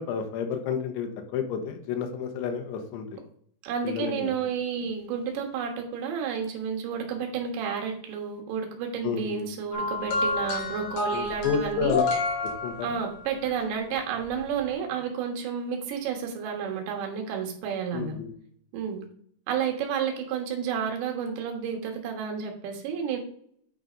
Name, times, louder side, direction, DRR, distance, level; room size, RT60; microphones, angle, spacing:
voice 1, 0.0-3.1 3.8-4.3 9.0-9.4 11.1-12.0 12.6-12.7 17.9-18.3, left 6 dB, 80° left, 4 dB, 3.3 m, -30 dB
voice 2, 3.6-12.0 12.8-18.2 18.7-19.0 19.5-23.2, right 7 dB, 75° right, 2 dB, 3.7 m, -31 dB
musical box, 9.7-13.3 14.3-14.5, left 3 dB, 50° left, 3.1 m, -29 dB
9.7 x 3.9 x 5.1 m, 0.63 s
omnidirectional pair, 5.4 m